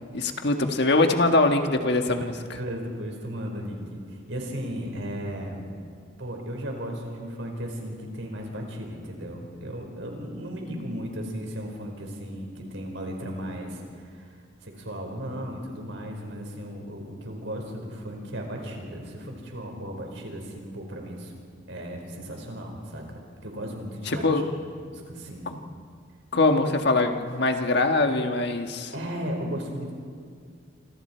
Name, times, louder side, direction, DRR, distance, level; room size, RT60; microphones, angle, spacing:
voice 1, 0.1-2.2 24.0-24.4 25.5-25.6 26.3-28.9, left 2 dB, 60° left, 5 dB, 1.6 m, -22 dB
voice 2, 2.5-5.7 6.2-14.4 14.6-21.3 21.7-23.0 23.4-24.4 24.8-25.5 28.9-29.9, equal, 75° right, 1 dB, 4.8 m, -35 dB
27.5 x 26.0 x 4.5 m, 2.1 s
head